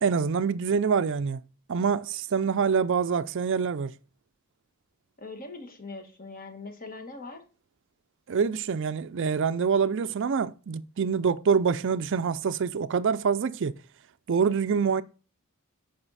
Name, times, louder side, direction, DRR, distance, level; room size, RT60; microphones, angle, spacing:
voice 1, 0.0-1.4 1.7-3.9 8.3-13.7 14.3-15.0, right 6 dB, 55° right, 0.4 m, -25 dB
voice 2, 5.2-7.4, left 3 dB, 40° left, 1.5 m, -41 dB
8.9 x 5.4 x 4.0 m
head